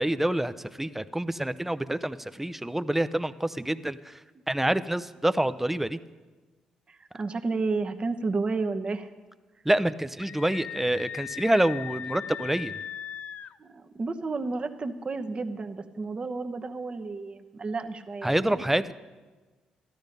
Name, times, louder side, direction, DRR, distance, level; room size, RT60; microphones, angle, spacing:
voice 1, 0.0-4.1 4.5-6.0 9.6-12.8 18.2-18.9, right 1 dB, 10° right, 13 dB, 0.6 m, -27 dB
voice 2, 6.9-9.1 13.6-18.6, right 3 dB, 40° right, 6 dB, 1.0 m, -32 dB
Screaming, 10.2-13.6, left 8 dB, 60° left, 0.3 m, -38 dB
13.5 x 12.0 x 5.3 m, 1.3 s
supercardioid pair, 60°, 3 cm